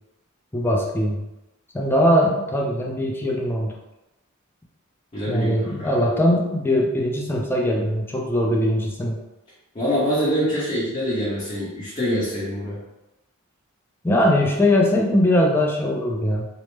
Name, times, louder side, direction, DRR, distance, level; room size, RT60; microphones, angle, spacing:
voice 1, 0.5-1.2 1.7-3.7 5.3-9.2 14.0-16.4, left 1 dB, 10° left, -1 dB, 0.4 m, -21 dB
voice 2, 5.1-6.0 9.7-12.8, equal, 30° left, -10 dB, 0.8 m, -25 dB
3.1 x 2.0 x 3.1 m, 0.95 s
head